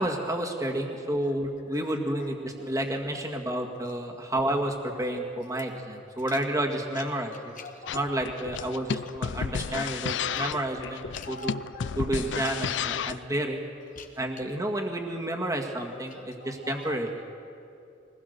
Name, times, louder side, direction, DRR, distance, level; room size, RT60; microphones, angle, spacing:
voice 1, 0.0-7.5 7.9-11.6 11.9-13.6 14.2-17.2, right 1 dB, 20° right, 1 dB, 2.0 m, -30 dB
voice 2, 6.9-8.2 8.7-8.8 9.1-9.4 10.1-10.4 11.1-12.0 12.4-12.6 13.1-13.2 13.9-14.1 16.1-17.0, left 2 dB, 45° left, 5 dB, 1.2 m, -44 dB
sound 1, 7.9-13.3, left 7 dB, 75° left, 0.5 m, -32 dB
22.5 x 19.5 x 6.7 m, 2.7 s
head